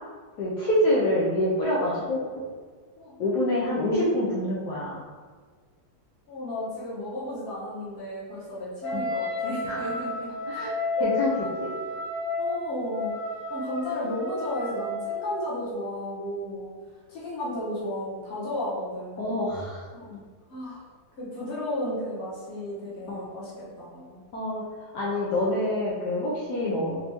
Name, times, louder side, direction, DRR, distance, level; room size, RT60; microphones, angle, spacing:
voice 1, 0.4-2.2 3.2-5.0 8.9-9.0 9.6-9.9 10.5-10.7 11.0-11.3 11.6-11.7 19.2-19.9 20.1-20.2 23.1-23.3 24.3-27.0, left 1 dB, 70° left, -6 dB, 1.3 m, -26 dB
voice 2, 6.3-10.7 11.0-11.1 12.4-13.2 13.5-16.7 17.1-19.4 19.9-20.2 20.5-20.9 21.2-24.2 26.5-26.9, left 1 dB, 35° left, -7 dB, 1.3 m, -34 dB
Wind instrument woodwind instrument, 8.8-15.4, left 2 dB, 50° left, 2.1 m, -32 dB
4.3 x 2.7 x 3.4 m, 1.5 s
omnidirectional pair, 2.0 m